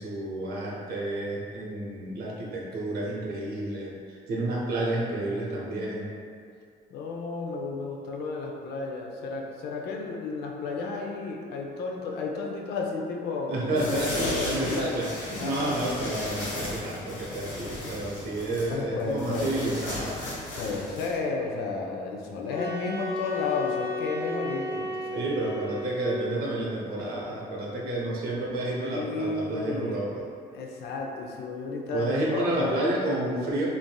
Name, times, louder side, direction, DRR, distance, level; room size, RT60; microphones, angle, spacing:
voice 1, 0.0-6.1 13.5-20.2 24.7-24.8 25.1-30.2 31.9-33.7, right 1 dB, 65° right, -3 dB, 0.7 m, -30 dB
voice 2, 6.9-14.9 15.4-15.8 18.7-19.5 20.6-25.2 28.8-30.1 30.5-32.8, left 4 dB, 70° left, 0 dB, 0.5 m, -32 dB
sound 1, 13.7-21.2, left 1 dB, 55° left, 1.2 m, -36 dB
sound 2, 22.5-26.4, left 1 dB, 25° left, 1.0 m, -33 dB
3.2 x 2.6 x 2.2 m, 2.3 s
cardioid pair, 110°, 17 cm